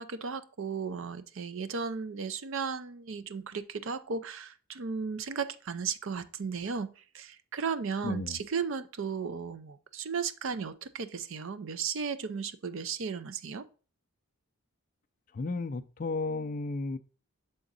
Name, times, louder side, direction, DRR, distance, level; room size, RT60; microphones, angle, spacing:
voice 1, 0.0-13.6, right 5 dB, 60° right, 0.5 m, -35 dB
voice 2, 8.0-8.4 15.3-17.0, left 3 dB, 35° left, 0.3 m, -33 dB
7.1 x 3.8 x 3.9 m
head